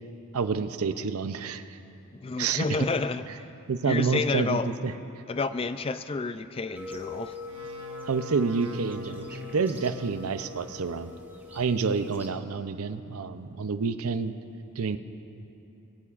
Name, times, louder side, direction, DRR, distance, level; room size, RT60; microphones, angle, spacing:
voice 1, 0.3-1.6 2.4-2.7 3.7-4.9 8.1-11.1 11.5-14.3 14.8-15.0, right 5 dB, 80° right, 10 dB, 0.6 m, -28 dB
voice 2, 2.2-3.5 3.8-4.7 5.3-7.4, left 4 dB, 25° left, 11 dB, 0.3 m, -30 dB
sound 1, 6.8-12.3, left 4 dB, 10° right, 0.9 m, -42 dB
sound 2, 7.5-11.1, equal, 60° right, 1.0 m, -45 dB
22.5 x 16.5 x 2.5 m, 3.0 s
head